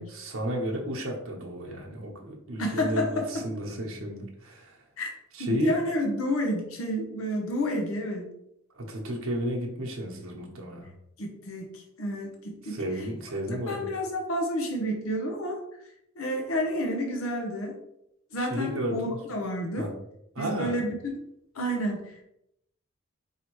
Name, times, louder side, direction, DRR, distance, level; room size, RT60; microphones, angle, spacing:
voice 1, 0.0-4.8 5.3-5.8 8.8-10.9 12.6-13.9 18.4-19.2 19.8-19.9 20.3-20.8, equal, 80° right, 0 dB, 1.0 m, -33 dB
voice 2, 2.6-3.5 5.0-5.1 5.4-8.3 11.2-12.8 13.6-15.6 16.2-17.8 18.3-19.9 20.4-21.2 21.5-22.2, equal, 80° left, 2 dB, 0.7 m, -30 dB
4.9 x 2.8 x 3.0 m, 0.79 s
head